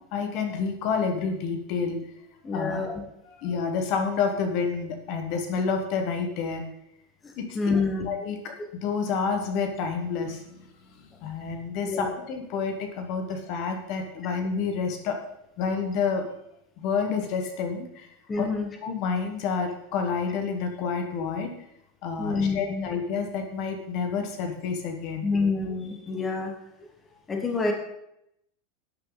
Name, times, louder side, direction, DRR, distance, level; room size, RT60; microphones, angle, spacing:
voice 1, 0.1-2.0 2.5-2.8 3.2-6.6 7.4-7.7 8.0-8.5 8.8-10.7 11.2-15.2 15.6-16.3 16.8-18.1 18.4-18.5 18.8-21.5 22.0-25.2, left 5 dB, 40° left, 5 dB, 1.4 m, -29 dB
voice 2, 2.4-2.9 7.2-8.1 11.9-12.1 18.3-18.7 22.2-22.9 25.2-26.5 27.3-27.7, left 4 dB, 15° left, 2 dB, 1.5 m, -27 dB
12.0 x 9.6 x 4.0 m, 0.79 s
supercardioid pair, 170°, 0 cm